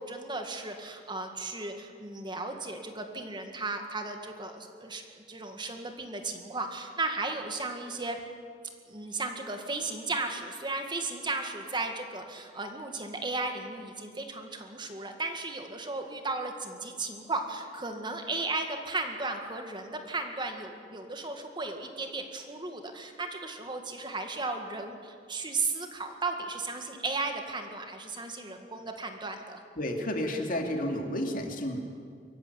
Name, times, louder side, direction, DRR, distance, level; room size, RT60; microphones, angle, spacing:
voice 1, 0.0-8.2 8.9-29.6, right 3 dB, 25° right, 4 dB, 2.0 m, -35 dB
voice 2, 29.8-31.8, left 1 dB, 50° left, 3 dB, 2.7 m, -31 dB
23.5 x 15.0 x 9.7 m, 2.1 s
head